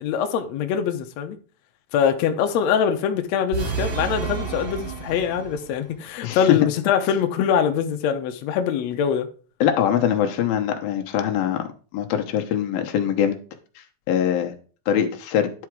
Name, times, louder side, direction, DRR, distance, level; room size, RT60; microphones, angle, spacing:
voice 1, 0.0-1.4 1.9-9.3, left 8 dB, 90° left, 1.5 m, -23 dB
sound 1, 3.5-5.8, right 6 dB, 50° right, 2.2 m, -30 dB
voice 2, 6.2-6.6 9.6-11.7 11.9-13.4 14.1-14.5 14.9-15.5, left 9 dB, 70° left, 2.7 m, -22 dB
10.5 x 4.8 x 4.7 m
omnidirectional pair, 4.5 m